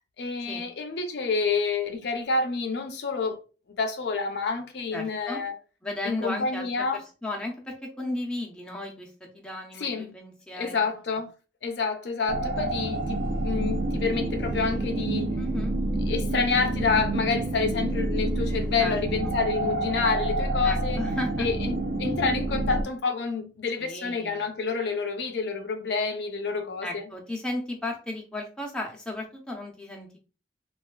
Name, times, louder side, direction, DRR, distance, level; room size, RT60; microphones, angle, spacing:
voice 1, 0.2-3.4 3.7-5.5 6.0-7.0 9.8-10.1 10.5-11.3 11.6-15.4 16.1-21.0 21.4-27.0, left 4 dB, 75° left, 0.5 m, -28 dB
voice 2, 4.9-5.4 5.8-10.9 15.4-15.8 18.8-19.0 19.2-19.3 20.6-21.5 23.8-24.5 26.8-30.2, left 1 dB, 5° left, 0.5 m, -35 dB
sound 1, 12.3-22.8, right 2 dB, 50° right, 0.4 m, -28 dB
3.2 x 2.3 x 2.2 m
head